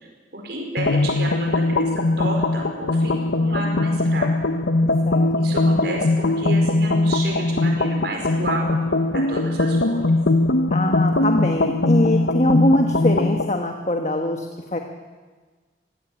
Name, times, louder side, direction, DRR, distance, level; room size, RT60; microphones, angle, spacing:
voice 1, 0.3-4.3 5.4-8.7 9.1-10.2, right 2 dB, 65° right, 1 dB, 4.9 m, -31 dB
sound 1, 0.8-13.5, left 2 dB, 80° left, 0.9 m, -20 dB
voice 2, 5.1-5.6 10.7-14.5 14.7-14.8, left 1 dB, 40° left, 4 dB, 1.4 m, -22 dB
23.0 x 16.0 x 8.5 m, 1.4 s
head